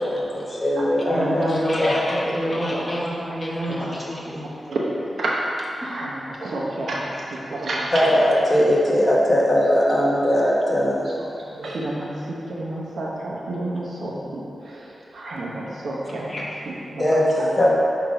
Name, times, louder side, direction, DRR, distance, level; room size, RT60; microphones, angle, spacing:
voice 1, 0.0-2.2 2.5-3.0 3.4-3.5 3.9-4.0 7.9-11.1 16.3-16.4 17.0-17.7, equal, 25° left, -5 dB, 0.9 m, -20 dB
voice 2, 1.0-4.4, equal, 5° right, -7 dB, 1.3 m, -27 dB
voice 3, 4.4-5.5 5.8-8.1 11.5-14.8 15.1-17.5, right 1 dB, 70° right, -4 dB, 0.9 m, -30 dB
5.8 x 3.7 x 5.0 m, 2.7 s
wide cardioid pair, 150°, 0 cm